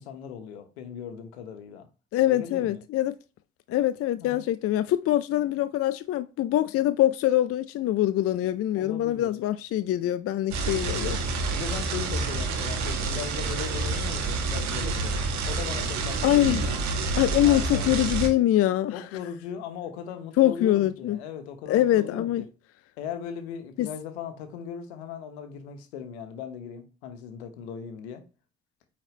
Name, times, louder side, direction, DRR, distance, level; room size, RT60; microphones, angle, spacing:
voice 1, 0.0-1.9 2.3-2.8 4.2-4.5 8.7-9.3 11.5-16.8 17.4-17.9 18.9-22.4 23.0-28.2, left 8 dB, 80° left, 1.2 m, -38 dB
voice 2, 2.1-3.2 3.7-11.2 16.2-16.7 17.1-19.0 20.4-21.2 21.7-22.5 23.8-23.9, left 13 dB, 45° left, 0.5 m, -24 dB
sound 1, 10.5-18.3, right 3 dB, 60° right, 1.6 m, -28 dB
8.9 x 4.1 x 3.2 m
hypercardioid pair, 50°, 32 cm